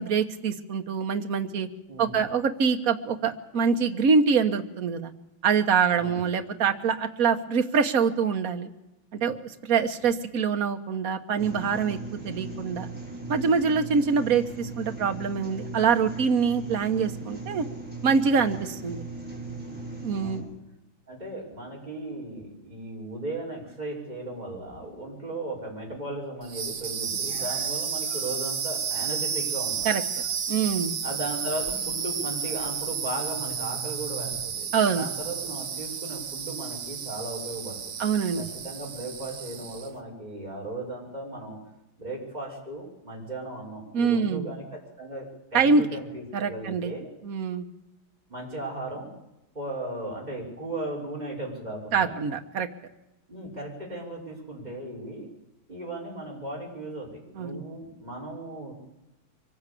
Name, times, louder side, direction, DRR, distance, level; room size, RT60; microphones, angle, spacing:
voice 1, 0.0-1.7 2.0-5.1 5.4-8.7 9.1-12.9 13.3-17.7 18.0-19.0 20.0-20.4 29.8-30.0 30.5-31.0 34.7-35.1 38.0-38.5 43.9-44.5 45.5-45.8 46.3-46.9 47.2-47.7 51.9-52.7 57.4-57.6, right 5 dB, 50° right, 5 dB, 1.6 m, -25 dB
voice 2, 1.9-2.3 6.0-6.2 10.0-10.1 20.2-20.5 21.1-29.9 31.0-37.9 38.3-41.6 42.0-47.1 48.3-49.1 49.5-52.2 53.3-55.3 55.7-58.7, right 2 dB, 20° right, -4 dB, 6.0 m, -36 dB
sound 1, 11.4-20.4, right 3 dB, 5° right, 6.9 m, -38 dB
sound 2, 26.4-40.0, right 7 dB, 70° right, 2.1 m, -32 dB
24.0 x 16.0 x 8.5 m, 0.96 s
omnidirectional pair, 2.2 m